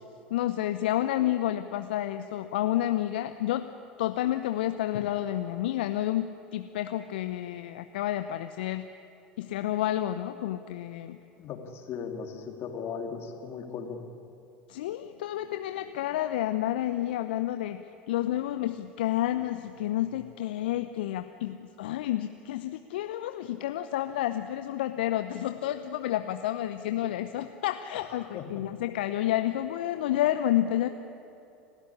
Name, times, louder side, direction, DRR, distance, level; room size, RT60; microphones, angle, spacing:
voice 1, 0.3-3.7 4.0-8.9 9.4-11.2 14.7-30.9, left 13 dB, 70° left, 9 dB, 0.7 m, -30 dB
voice 2, 11.4-14.0 28.2-28.6, left 6 dB, 45° left, 4 dB, 2.9 m, -37 dB
30.0 x 13.0 x 9.9 m, 2.9 s
figure-of-eight pair, 75°, 6 cm